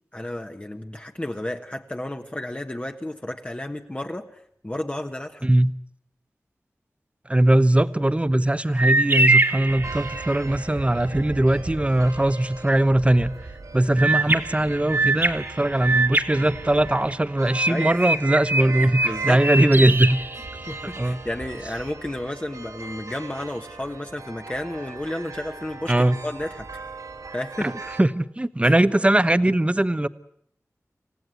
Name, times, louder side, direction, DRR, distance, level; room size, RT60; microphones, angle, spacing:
voice 1, 0.1-5.5 17.7-17.9 18.8-19.8 20.7-26.8 27.3-27.7 28.6-28.7, left 1 dB, 20° left, 3 dB, 1.4 m, -32 dB
voice 2, 5.4-5.8 7.3-13.3 13.7-20.2 21.0-21.2 25.9-26.2 28.0-30.1, right 1 dB, 20° right, 13 dB, 1.0 m, -20 dB
sound 1, 8.8-10.5 14.0-17.1 17.5-21.0, right 2 dB, 40° right, 1.9 m, -24 dB
sound 2, 9.7-28.0, right 3 dB, 90° right, 3.6 m, -39 dB
27.0 x 16.0 x 9.4 m, 0.70 s
wide cardioid pair, 75°, 6 cm